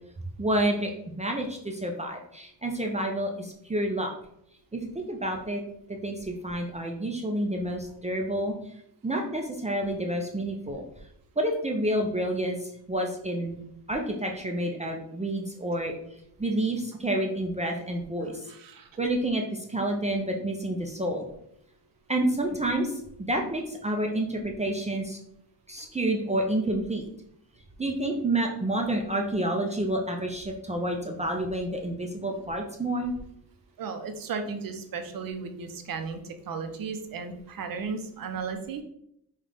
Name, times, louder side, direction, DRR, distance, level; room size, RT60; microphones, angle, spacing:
voice 1, 0.4-4.1 4.7-5.6 5.9-8.5 9.0-10.8 11.4-15.9 16.4-18.5 19.0-21.3 22.1-22.9 23.2-25.2 25.7-27.1 27.8-33.1, right 1 dB, 15° right, 2 dB, 0.5 m, -29 dB
voice 2, 18.5-18.9 25.8-25.9 33.8-38.8, right 5 dB, 55° right, 7 dB, 0.7 m, -35 dB
5.6 x 2.4 x 3.4 m, 0.74 s
cardioid pair, 110°, 40 cm